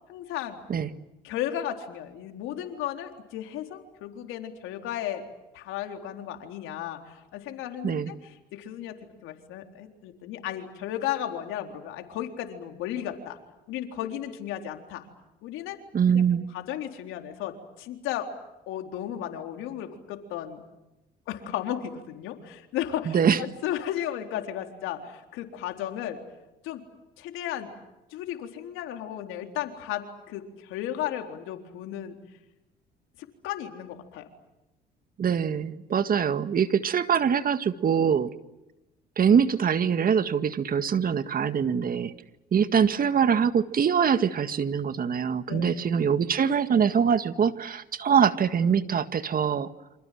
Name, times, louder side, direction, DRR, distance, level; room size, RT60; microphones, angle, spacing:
voice 1, 0.1-0.6 1.2-5.2 5.5-9.0 9.2-13.4 13.7-15.1 15.4-15.8 16.1-16.2 16.5-18.3 18.7-20.6 21.3-26.2 26.6-26.8 27.2-27.7 28.1-32.2 33.4-34.3 45.5-45.7, left 11 dB, 75° left, 5 dB, 3.9 m, -34 dB
voice 2, 15.9-16.5 23.1-23.4 35.2-38.3 39.2-42.1 42.5-49.7, right 7 dB, 45° right, 11 dB, 1.8 m, -23 dB
28.0 x 27.0 x 7.7 m, 0.97 s
supercardioid pair, 75°, 21 cm